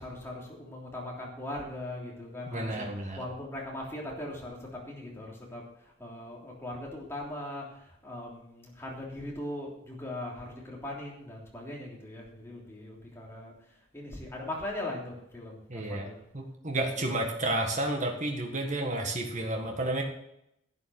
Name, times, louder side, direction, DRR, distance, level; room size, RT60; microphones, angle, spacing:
voice 1, 0.0-5.6 6.0-13.5 13.9-16.2 17.0-17.2, left 1 dB, 10° left, -3 dB, 3.2 m, -40 dB
voice 2, 2.5-3.2 15.7-16.1 16.3-20.0, right 1 dB, 35° right, 2 dB, 1.6 m, -31 dB
11.5 x 8.6 x 6.4 m, 0.78 s
head